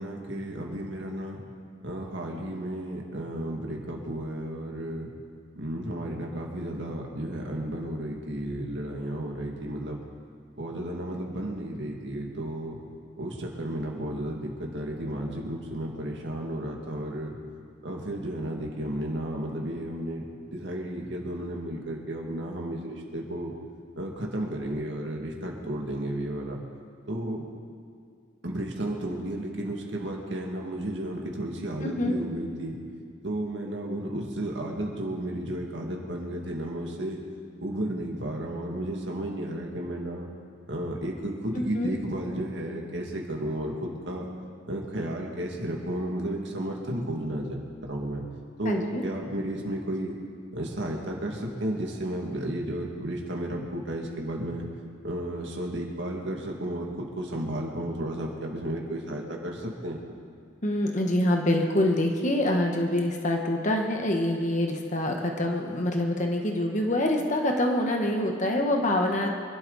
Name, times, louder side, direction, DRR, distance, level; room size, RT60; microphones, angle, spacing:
voice 1, 0.0-1.4 1.8-5.1 5.6-10.0 10.6-12.8 13.2-17.4 17.8-20.2 20.5-23.5 24.0-26.6 27.1-27.4 28.4-32.8 33.2-37.2 37.6-40.3 40.7-44.3 44.7-48.3 48.6-50.1 50.5-54.7 55.0-60.0, right 1 dB, 65° right, 0 dB, 2.3 m, -33 dB
voice 2, 31.8-32.2 41.5-41.9 48.6-49.0 60.6-69.3, left 1 dB, 40° left, 2 dB, 1.3 m, -26 dB
25.0 x 12.0 x 4.2 m, 2.2 s
head